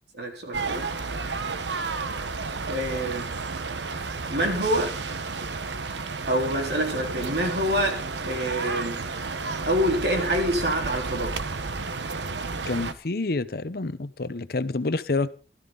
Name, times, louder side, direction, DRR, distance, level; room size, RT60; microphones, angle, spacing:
voice 1, 0.1-0.9 2.4-3.3 4.3-5.0 6.3-9.1 9.6-11.4, equal, 65° right, 3 dB, 3.8 m, -26 dB
sound 1, 0.5-12.9, right 4 dB, 85° right, 1.1 m, -32 dB
voice 2, 12.7-15.3, left 3 dB, 55° left, 14 dB, 0.8 m, -28 dB
16.5 x 13.0 x 3.9 m, 0.37 s
head